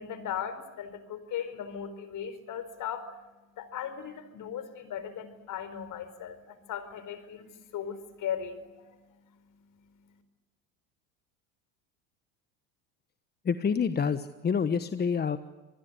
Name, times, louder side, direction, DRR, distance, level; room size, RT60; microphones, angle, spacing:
voice 1, 0.0-3.2 3.6-9.0, left 8 dB, 50° left, 13 dB, 4.7 m, -38 dB
voice 2, 13.4-15.4, left 6 dB, 25° left, 11 dB, 1.2 m, -27 dB
26.5 x 21.0 x 8.3 m, 1.2 s
supercardioid pair, 100°, 41 cm